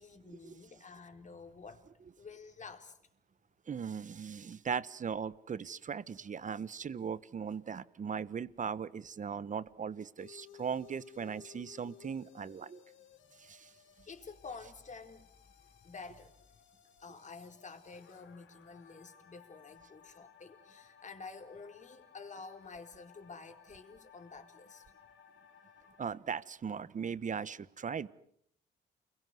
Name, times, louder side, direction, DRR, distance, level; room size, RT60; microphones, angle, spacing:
voice 1, 0.0-1.9 2.2-3.0 14.1-16.4 17.0-24.8, left 4 dB, 40° left, 4.4 m, -50 dB
voice 2, 3.7-12.8 13.4-13.7 26.0-28.1, right 6 dB, 40° right, 1.2 m, -38 dB
sound 1, 10.2-26.2, left 9 dB, 75° left, 3.8 m, -59 dB
29.5 x 22.5 x 8.0 m
cardioid pair, 90°, 20 cm